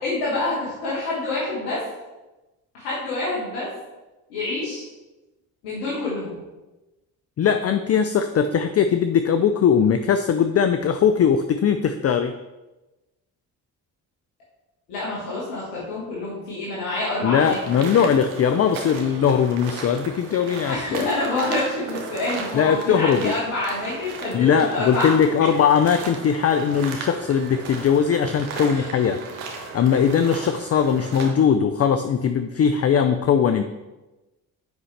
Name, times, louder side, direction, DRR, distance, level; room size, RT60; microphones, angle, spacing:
voice 1, 0.0-1.8 2.7-3.7 4.3-4.8 5.6-6.4 14.9-17.6 20.7-25.1 28.7-29.2, left 2 dB, 85° left, -8 dB, 1.6 m, -27 dB
voice 2, 7.4-12.3 17.2-21.1 22.5-23.4 24.3-29.2 29.7-33.6, left 7 dB, 35° left, 9 dB, 0.5 m, -20 dB
sound 1, 17.3-31.3, right 4 dB, 85° right, 1.1 m, -36 dB
7.9 x 5.4 x 3.3 m, 1.1 s
hypercardioid pair, 45°, 43 cm